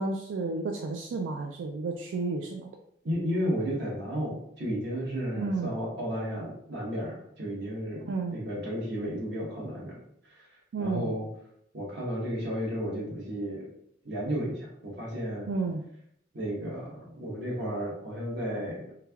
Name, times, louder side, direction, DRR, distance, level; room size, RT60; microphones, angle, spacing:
voice 1, 0.0-2.7 5.4-5.8 8.1-8.4 10.7-11.1 15.5-15.8, right 3 dB, 90° right, 2 dB, 0.3 m, -31 dB
voice 2, 3.0-8.0 8.3-10.0 10.3-10.5 10.8-11.3 11.7-13.7 14.0-15.5 16.3-18.9, equal, 65° right, -3 dB, 1.1 m, -33 dB
3.4 x 3.2 x 2.3 m, 0.73 s
head